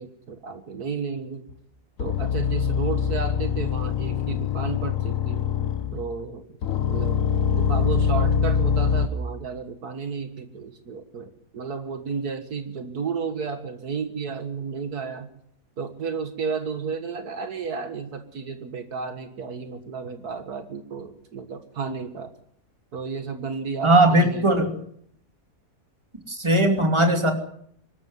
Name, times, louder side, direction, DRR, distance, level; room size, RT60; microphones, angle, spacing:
voice 1, 0.0-1.5 2.0-5.4 5.9-6.4 6.9-7.2 7.5-15.3 15.8-22.3 22.9-24.5, right 5 dB, 75° right, 8 dB, 2.1 m, -32 dB
sound 1, 1.5-1.6 2.0-6.1 6.6-9.1, left 7 dB, 60° left, 1.5 m, -24 dB
voice 2, 23.8-24.8 26.3-27.3, right 1 dB, 15° right, 5 dB, 2.7 m, -19 dB
23.5 x 13.0 x 9.5 m, 0.68 s
omnidirectional pair, 1.7 m